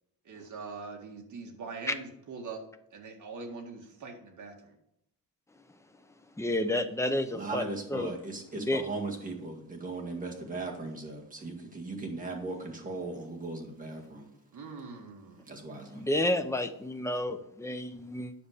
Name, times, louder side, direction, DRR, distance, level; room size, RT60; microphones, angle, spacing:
voice 1, 0.2-2.6 2.9-4.8 14.5-15.5, right 4 dB, 55° right, 2.0 m, -43 dB
voice 2, 6.3-7.6 7.9-8.1 8.5-8.8 15.9-18.3, left 1 dB, 10° left, 0.6 m, -30 dB
voice 3, 7.3-14.3 15.5-16.1, right 2 dB, 20° right, 2.0 m, -38 dB
9.9 x 6.8 x 5.1 m
wide cardioid pair, 165°, 35 cm